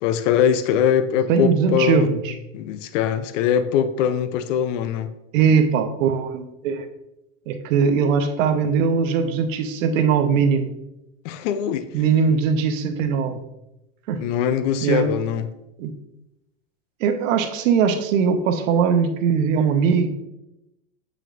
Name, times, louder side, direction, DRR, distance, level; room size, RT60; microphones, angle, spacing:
voice 1, 0.0-2.1 2.5-5.1 11.2-11.9 14.1-15.5, left 9 dB, 65° left, 0.6 m, -22 dB
voice 2, 1.3-2.3 5.3-6.9 7.5-10.7 11.9-13.4 14.1-14.2 14.8-15.1 15.8-15.9 17.0-20.1, right 6 dB, 75° right, 0.9 m, -20 dB
7.3 x 5.1 x 2.5 m
supercardioid pair, 130°, 39 cm